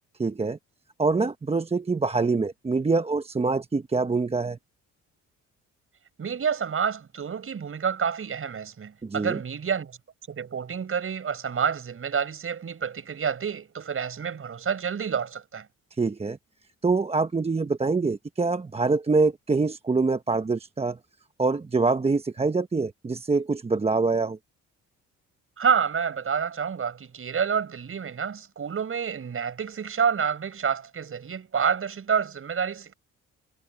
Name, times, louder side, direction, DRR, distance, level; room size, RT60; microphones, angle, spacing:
voice 1, 0.2-0.6 1.0-4.6 9.0-9.4 16.0-16.4 16.8-21.0 21.4-24.4, right 3 dB, 20° right, 1.0 m, -25 dB
voice 2, 6.2-10.0 10.3-15.7 25.6-32.9, right 7 dB, 45° right, 6.0 m, -28 dB
cardioid pair, 90°, 30 cm